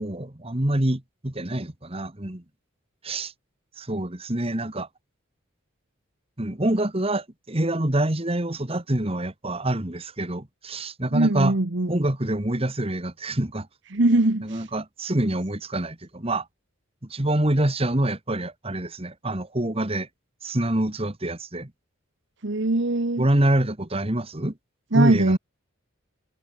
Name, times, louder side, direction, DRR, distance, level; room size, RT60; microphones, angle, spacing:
voice 1, 0.0-2.4 3.0-3.3 3.8-4.9 6.4-11.5 11.9-13.7 14.4-16.5 17.1-20.1 20.4-21.7 23.2-24.5 24.9-25.4, right 1 dB, 30° right, 1.8 m, -26 dB
voice 2, 11.1-11.9 13.9-14.6 22.4-23.3 24.9-25.4, right 2 dB, 60° right, 1.3 m, -22 dB
head